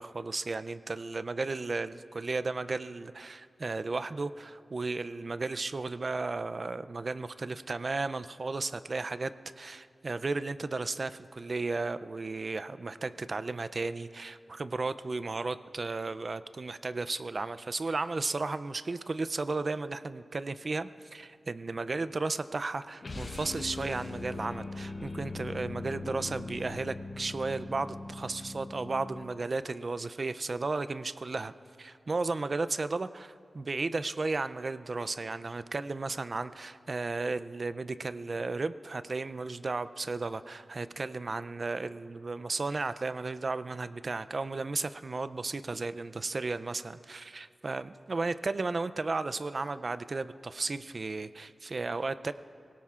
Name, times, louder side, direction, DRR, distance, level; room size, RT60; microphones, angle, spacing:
voice 1, 0.0-31.5 31.8-52.3, right 3 dB, 50° right, 13 dB, 0.4 m, -34 dB
sound 1, 23.0-29.5, left 3 dB, 50° left, 1.0 m, -40 dB
24.0 x 17.0 x 2.5 m, 2.3 s
wide cardioid pair, 80°, 0 cm